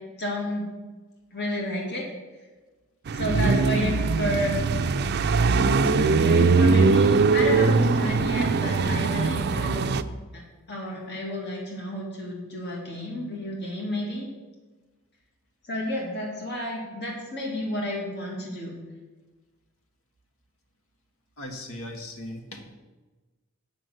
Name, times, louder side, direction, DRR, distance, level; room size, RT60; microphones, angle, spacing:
voice 1, 0.2-0.7 1.3-2.1 3.1-4.6 5.5-9.9 10.3-10.4 10.7-14.3 15.7-18.8, left 1 dB, 55° left, -2 dB, 2.2 m, -31 dB
sound 1, 3.1-10.0, right 4 dB, 50° right, 0.4 m, -21 dB
voice 2, 21.4-22.6, left 1 dB, 75° left, 3 dB, 1.6 m, -38 dB
7.7 x 6.0 x 7.7 m, 1.2 s
head